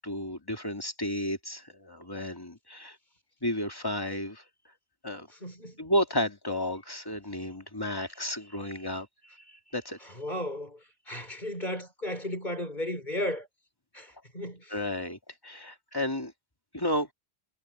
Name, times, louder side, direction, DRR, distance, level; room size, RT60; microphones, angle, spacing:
voice 1, 0.0-3.0 3.4-4.4 5.0-5.3 5.8-9.1 9.5-10.0 14.7-16.3 16.7-17.1, left 1 dB, 20° left, 2.4 m, -32 dB
voice 2, 5.3-5.8 10.0-13.5 13.9-14.8, left 1 dB, 45° left, 5.7 m, -35 dB
omnidirectional pair, 1.1 m